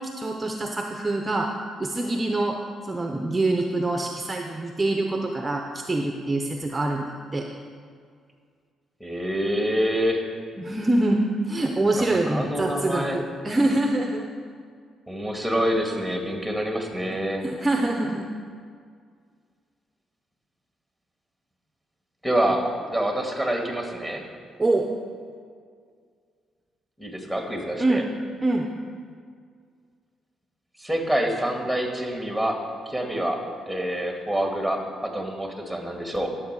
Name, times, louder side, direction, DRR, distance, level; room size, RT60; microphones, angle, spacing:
voice 1, 0.0-1.5 1.8-2.6 2.8-7.5 10.6-14.3 17.4-18.3 24.6-24.9 27.8-28.0 28.4-28.7, right 2 dB, 20° right, 3 dB, 0.7 m, -25 dB
voice 2, 9.0-10.2 12.0-13.2 15.1-17.4 22.2-24.2 27.0-28.0 30.8-36.3, equal, 5° left, 1 dB, 1.9 m, -26 dB
12.0 x 7.5 x 4.8 m, 2.1 s
cardioid pair, 90°, 0 cm